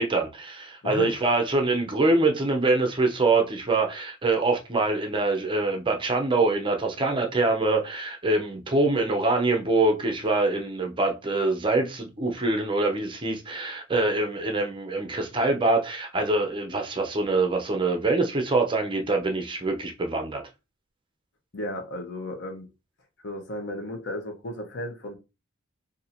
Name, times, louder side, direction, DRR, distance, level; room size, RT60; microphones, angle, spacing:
voice 1, 0.0-20.4, right 2 dB, 20° right, 0.6 m, -24 dB
voice 2, 21.5-22.7 23.2-25.1, left 1 dB, 55° left, 0.9 m, -34 dB
2.7 x 2.6 x 4.2 m
head